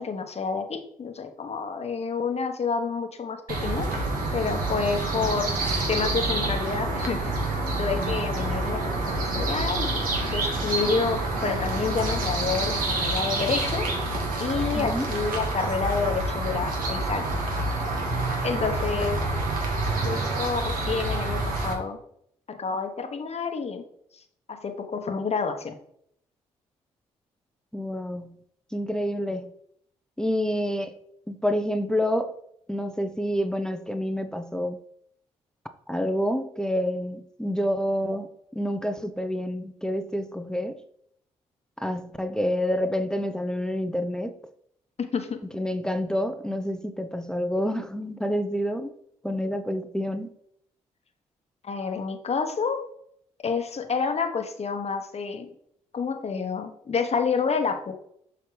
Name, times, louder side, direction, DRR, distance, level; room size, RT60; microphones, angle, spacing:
voice 1, 0.0-3.9 4.3-5.5 5.9-13.8 14.4-17.4 18.4-19.2 20.0-22.0 22.5-23.8 24.1-24.2 24.5-25.8 45.1-45.4 51.6-52.8 53.4-55.5 55.9-57.9, left 5 dB, 45° left, 6 dB, 1.1 m, -29 dB
sound 1, 3.5-21.7, right 2 dB, 65° right, 1.7 m, -27 dB
voice 2, 14.8-15.1 27.7-28.4 28.7-29.5 30.2-30.9 31.3-32.3 32.7-34.8 35.9-40.8 41.8-44.3 45.5-48.9 49.2-50.3, equal, 5° left, 9 dB, 0.7 m, -28 dB
6.7 x 5.6 x 3.3 m, 0.69 s
hypercardioid pair, 45°, 15 cm